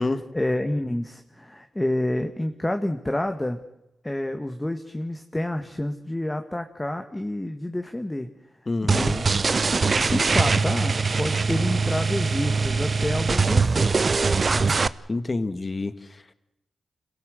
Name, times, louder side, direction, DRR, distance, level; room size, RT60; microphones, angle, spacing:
voice 1, 0.0-3.6 4.0-8.3 8.8-9.2 10.0-14.0 14.5-14.7, left 1 dB, 15° left, 6 dB, 1.7 m, -29 dB
voice 2, 8.7-9.2 15.1-15.9, left 3 dB, 35° left, 12 dB, 1.7 m, -27 dB
sound 1, 8.9-14.9, right 4 dB, 45° right, 0.7 m, -22 dB
26.5 x 17.0 x 8.0 m, 0.86 s
cardioid pair, 65°, 0 cm